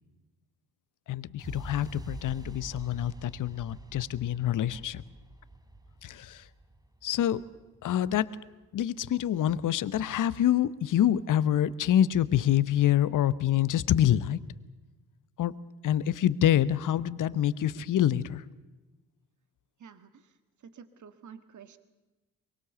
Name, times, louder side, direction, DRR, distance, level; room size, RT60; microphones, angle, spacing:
voice 1, 1.1-5.0 6.0-6.4 7.0-7.4 7.8-8.3 8.7-14.4 15.4-15.5 15.8-18.4, left 11 dB, 45° left, 16 dB, 1.0 m, -26 dB
sound 1, 1.4-9.3, right 1 dB, 10° right, 1.6 m, -46 dB
voice 2, 19.8-20.2 20.6-21.8, right 7 dB, 45° right, 11 dB, 1.8 m, -50 dB
23.5 x 20.5 x 6.9 m, 1.1 s
hypercardioid pair, 50°, 42 cm